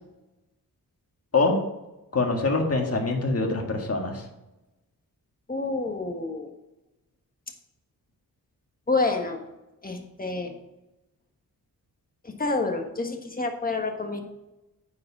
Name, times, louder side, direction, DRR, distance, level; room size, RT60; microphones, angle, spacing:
voice 1, 2.1-4.2, left 3 dB, 40° left, 2 dB, 1.9 m, -24 dB
voice 2, 5.5-6.5 8.9-9.4 9.8-10.5 12.2-14.2, left 3 dB, 25° left, 3 dB, 1.5 m, -28 dB
9.3 x 4.9 x 6.1 m, 0.97 s
wide cardioid pair, 105°, 36 cm